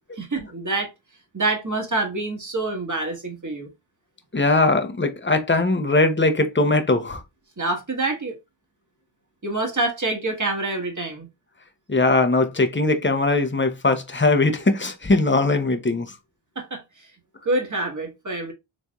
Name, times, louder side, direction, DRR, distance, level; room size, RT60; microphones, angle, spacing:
voice 1, 0.2-0.9 1.3-3.7 7.6-8.4 9.4-11.3 16.5-17.1 17.4-18.5, right 2 dB, 40° right, 1.4 m, -26 dB
voice 2, 4.3-7.2 11.9-16.1, left 2 dB, 25° left, 0.7 m, -20 dB
4.1 x 3.3 x 2.3 m
wide cardioid pair, 50°, 48 cm